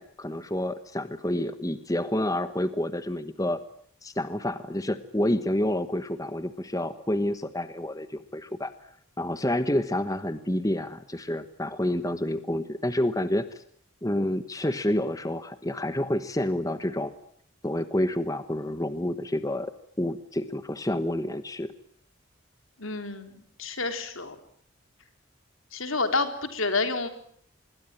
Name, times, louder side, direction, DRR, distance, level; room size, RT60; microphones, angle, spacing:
voice 1, 0.0-3.6 4.0-8.7 9.2-13.6 14.0-17.1 17.6-21.7, left 1 dB, 15° left, 11 dB, 1.1 m, -29 dB
voice 2, 22.8-23.3 23.6-24.4 25.7-27.1, left 3 dB, 80° left, 8 dB, 3.8 m, -29 dB
26.0 x 21.5 x 9.1 m, 0.63 s
head